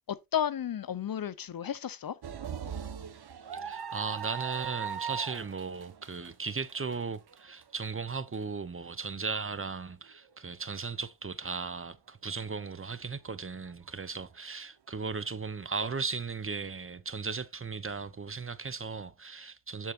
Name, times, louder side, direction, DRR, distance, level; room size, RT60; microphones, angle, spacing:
voice 1, 0.1-2.1, left 9 dB, 50° left, 0.7 m, -33 dB
sound 1, 2.2-8.3 8.8-8.9 10.1-10.3, right 7 dB, 55° right, 1.2 m, -39 dB
voice 2, 3.5-19.9, right 4 dB, 30° right, 0.8 m, -36 dB
13.0 x 4.6 x 2.6 m
cardioid pair, 50°, 46 cm